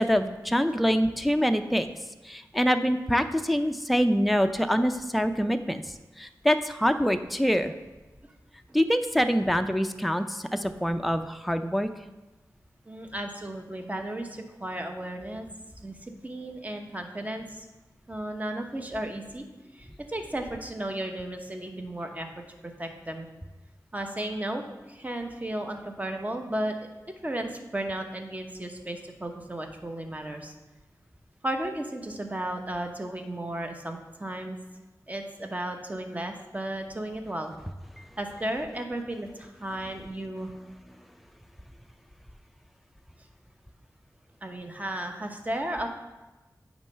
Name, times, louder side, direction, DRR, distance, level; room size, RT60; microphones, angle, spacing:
voice 1, 0.0-1.9 2.2-5.8 6.2-7.7 8.7-11.9 38.0-38.1, equal, ahead, 8 dB, 0.4 m, -25 dB
voice 2, 12.8-15.5 15.8-17.7 18.1-19.4 19.7-22.3 22.6-23.3 23.9-30.5 31.4-34.6 35.1-37.5 38.2-40.5 43.2-43.3 44.4-45.9, right 1 dB, 20° right, 4 dB, 0.9 m, -34 dB
8.9 x 3.1 x 5.6 m, 1.1 s
wide cardioid pair, 60°, 7 cm